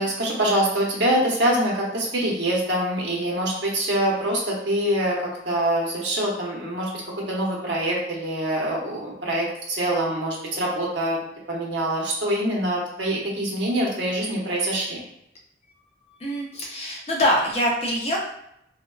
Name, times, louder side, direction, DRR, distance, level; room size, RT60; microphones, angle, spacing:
voice 1, 0.0-5.2 5.4-11.2 11.5-15.0, right 1 dB, 70° right, -3 dB, 0.8 m, -24 dB
voice 2, 16.2-18.2, equal, 35° left, -1 dB, 0.5 m, -24 dB
3.4 x 2.2 x 2.3 m, 0.76 s
head